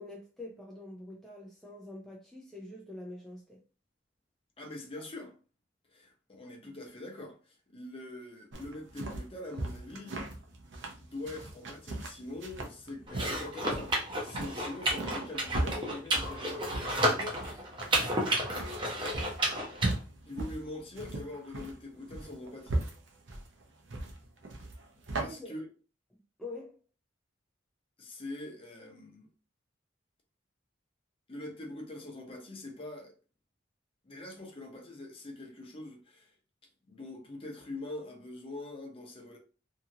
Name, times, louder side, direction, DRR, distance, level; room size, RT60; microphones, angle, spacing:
voice 1, 0.0-3.6 25.2-25.6 26.4-26.8, left 2 dB, ahead, 0.4 m, -45 dB
voice 2, 4.6-5.3 5.9-10.2 11.0-17.6 20.2-22.8 25.1-25.6 28.0-29.3 31.3-33.2 34.0-36.3 36.9-39.4, left 2 dB, 30° left, 0.8 m, -43 dB
sound 1, 8.5-25.2, right 2 dB, 75° right, 0.7 m, -38 dB
sound 2, 13.1-19.9, right 1 dB, 25° right, 0.8 m, -31 dB
2.8 x 2.4 x 2.8 m
head